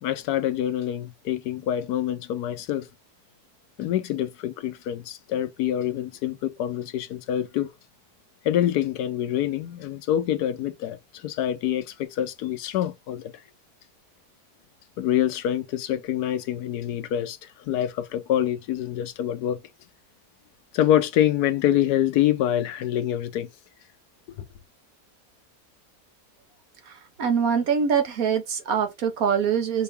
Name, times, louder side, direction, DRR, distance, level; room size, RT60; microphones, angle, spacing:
voice 1, 0.0-2.9 3.8-7.7 8.4-13.3 15.0-19.6 20.7-23.5 24.4-24.5, left 11 dB, 80° left, 1.2 m, -26 dB
voice 2, 27.2-29.8, right 7 dB, 65° right, 1.4 m, -23 dB
5.4 x 2.7 x 3.4 m
omnidirectional pair, 1.7 m